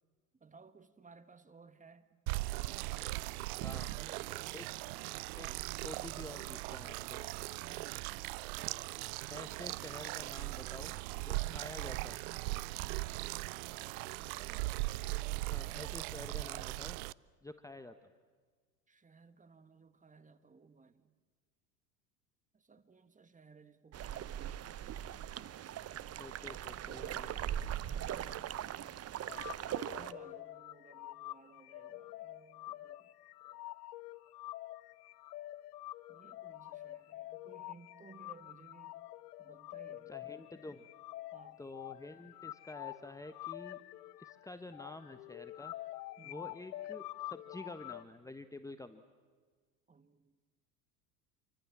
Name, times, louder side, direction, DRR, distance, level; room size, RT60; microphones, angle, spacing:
voice 1, 0.4-2.1 2.5-2.8 3.7-4.7 7.6-8.0 11.4-11.7 13.7-14.8 18.9-21.1 22.5-24.8 26.4-29.1 30.0-33.1 33.4-33.6 36.1-39.0 39.4-40.1 41.3-41.6 46.2-46.5 49.9-50.5, right 4 dB, 15° right, 11 dB, 1.8 m, -60 dB
sound 1, 2.3-17.1, right 21 dB, 65° right, 0.7 m, -39 dB
voice 2, 3.6-3.9 4.5-4.6 5.0-5.1 5.3-5.5 5.7-7.3 9.3-12.4 15.5-17.0 17.4-18.1 26.2-27.3 40.1-40.9 41.6-43.8 44.2-45.7 46.2-49.0, left 2 dB, 5° left, 9 dB, 1.3 m, -49 dB
sound 2, 23.9-30.1, right 11 dB, 30° right, 1.0 m, -40 dB
sound 3, 29.3-48.0, left 16 dB, 70° left, 0.8 m, -47 dB
28.5 x 24.5 x 7.4 m, 1.5 s
hypercardioid pair, 85°, 48 cm